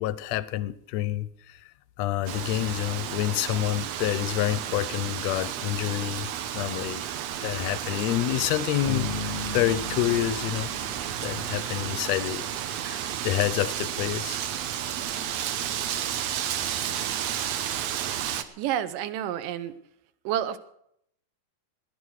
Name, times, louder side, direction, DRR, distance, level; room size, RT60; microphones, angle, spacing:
voice 1, 0.0-1.6 2.0-6.3 6.5-7.0 7.4-10.7 11.2-14.4, left 14 dB, 75° left, 16 dB, 1.6 m, -28 dB
Wind, 2.3-18.4, right 10 dB, 70° right, 1.7 m, -32 dB
Bass guitar, 8.9-11.9, left 3 dB, 25° right, 1.6 m, -36 dB
voice 2, 18.6-19.7 20.2-20.6, right 10 dB, 85° right, 12 dB, 2.5 m, -29 dB
18.0 x 10.5 x 6.4 m, 0.71 s
omnidirectional pair, 3.8 m